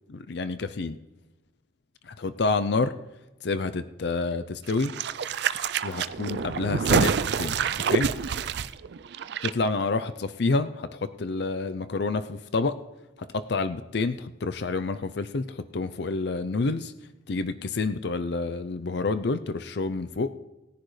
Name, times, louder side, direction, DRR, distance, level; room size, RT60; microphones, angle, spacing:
voice 1, 0.1-1.0 2.0-2.9 3.4-4.9 5.8-8.1 9.4-12.7 13.3-16.9 17.3-20.3, left 3 dB, 60° left, 11 dB, 0.5 m, -28 dB
sound 1, 4.7-9.5 9.8-9.9, right 6 dB, 60° right, 0.4 m, -27 dB
19.5 x 10.0 x 3.2 m, 1.0 s
head